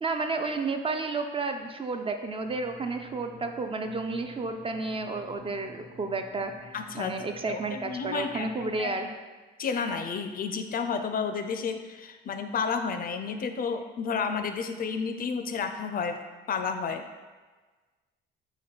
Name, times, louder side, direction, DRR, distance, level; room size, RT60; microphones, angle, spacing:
voice 1, 0.0-9.1, right 3 dB, 30° right, 6 dB, 0.3 m, -32 dB
sound 1, 2.4-8.8, equal, 50° right, 1.0 m, -51 dB
voice 2, 6.7-7.1 7.5-8.9 9.6-16.2 16.5-17.0, left 5 dB, 45° left, 7 dB, 0.4 m, -31 dB
3.9 x 3.0 x 4.3 m, 1.3 s
cardioid pair, 90°, 20 cm